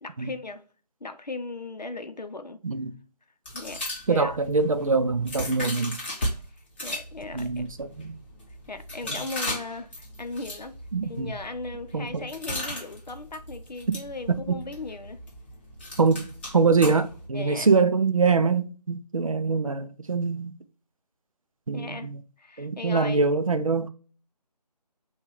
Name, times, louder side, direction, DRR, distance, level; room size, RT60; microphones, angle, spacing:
voice 1, 0.0-0.6 1.0-2.6 3.5-4.4 6.8-7.6 8.7-15.2 17.3-17.7 21.7-22.1 22.4-23.2, left 3 dB, 85° left, 0.7 m, -37 dB
sound 1, 3.5-6.3 6.7-17.3, left 1 dB, 15° left, 0.8 m, -37 dB
voice 2, 4.1-6.0 7.3-8.2 9.0-9.2 10.9-11.3 11.9-12.3 13.9-14.0 14.3-14.6 16.0-20.5 21.7-22.2 22.6-23.9, right 4 dB, 55° right, 0.5 m, -24 dB
5.5 x 2.3 x 3.0 m
figure-of-eight pair, 155°, 21 cm